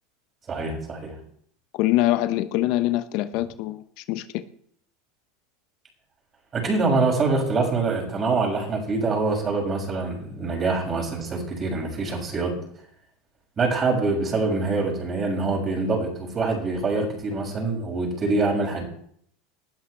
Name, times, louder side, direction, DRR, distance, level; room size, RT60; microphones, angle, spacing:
voice 1, 0.5-1.2 6.5-12.6 13.6-18.8, right 3 dB, 30° right, 0 dB, 7.0 m, -25 dB
voice 2, 1.7-4.4, left 15 dB, 60° left, 12 dB, 0.8 m, -24 dB
19.5 x 12.5 x 3.4 m, 0.64 s
hypercardioid pair, 85°, 0 cm